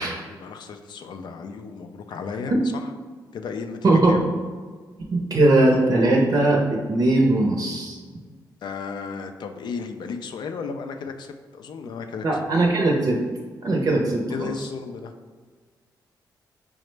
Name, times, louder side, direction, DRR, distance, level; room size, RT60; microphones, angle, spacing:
voice 1, 0.3-2.5 3.3-4.2 8.6-12.3 14.3-15.1, left 5 dB, 65° left, 6 dB, 0.4 m, -34 dB
voice 2, 3.8-4.2 5.1-8.0 12.2-13.2 13.6-14.7, right 2 dB, 50° right, -1 dB, 0.6 m, -20 dB
4.9 x 2.1 x 3.2 m, 1.5 s
cardioid pair, 70°, 8 cm